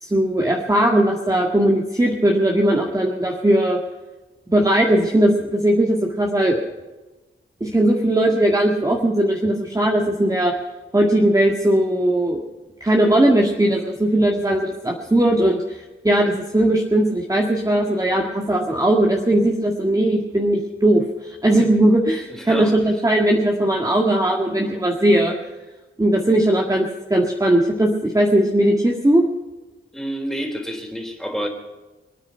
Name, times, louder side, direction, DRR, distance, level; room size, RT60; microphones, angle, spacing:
voice 1, 0.0-3.8 4.5-6.6 7.6-10.5 10.9-12.4 12.8-25.4 26.0-29.2, right 1 dB, 15° right, 0 dB, 1.8 m, -18 dB
voice 2, 22.3-22.8 29.9-31.5, equal, ahead, 2 dB, 3.6 m, -28 dB
24.5 x 9.7 x 5.7 m, 1.2 s
wide cardioid pair, 125°, 21 cm